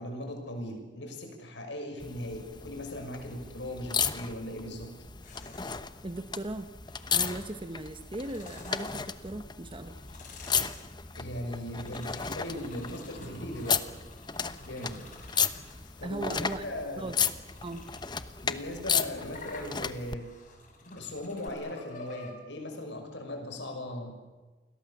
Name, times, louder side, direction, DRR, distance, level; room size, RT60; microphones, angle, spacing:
voice 1, 0.0-4.9 11.1-13.9 14.6-15.0 16.0-17.1 18.4-20.3 21.0-24.1, left 1 dB, 75° left, 5 dB, 6.3 m, -38 dB
sound 1, 2.0-20.2 21.5-21.6, left 6 dB, 25° left, 1.0 m, -34 dB
sound 2, 5.2-5.9 6.9-7.6 8.1-9.3 9.8-16.1 16.6-22.3, left 2 dB, 45° left, 6.1 m, -49 dB
voice 2, 6.0-6.7 7.1-10.0 16.0-16.6 17.0-17.2 17.6-17.8, right 2 dB, 30° right, 8 dB, 1.1 m, -38 dB
29.5 x 22.0 x 7.4 m, 1.2 s
head